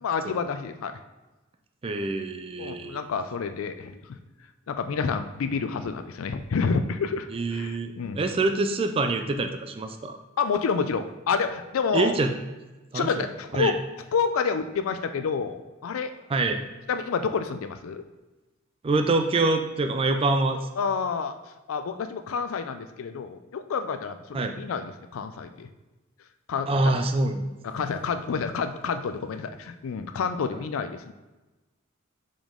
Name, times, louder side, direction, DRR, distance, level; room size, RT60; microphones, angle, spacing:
voice 1, 0.0-0.9 2.6-4.2 4.7-8.3 10.4-12.2 12.9-13.8 14.1-16.1 16.9-18.0 20.8-21.4 21.7-25.7 26.5-27.0 27.6-31.1, left 5 dB, 90° left, 9 dB, 0.4 m, -29 dB
voice 2, 1.8-3.0 7.3-10.2 11.9-12.3 12.9-13.1 13.5-13.7 16.3-16.6 18.8-20.6 24.3-24.5 26.7-27.4, right 2 dB, 25° right, 6 dB, 0.4 m, -25 dB
5.2 x 5.1 x 3.7 m, 1.1 s
head